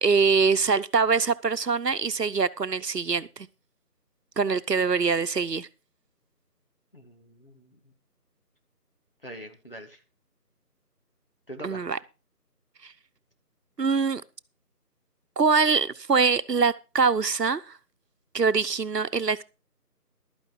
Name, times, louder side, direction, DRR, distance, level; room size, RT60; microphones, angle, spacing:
voice 1, 0.0-3.5 4.4-5.7 11.6-12.0 12.8-12.9 13.8-14.2 15.4-17.8 18.3-19.4, right 5 dB, 85° right, 1.0 m, -24 dB
voice 2, 6.9-7.9 9.2-10.0 11.5-11.9, right 1 dB, 35° left, 2.0 m, -43 dB
12.5 x 9.7 x 4.8 m
figure-of-eight pair, 175°, 48 cm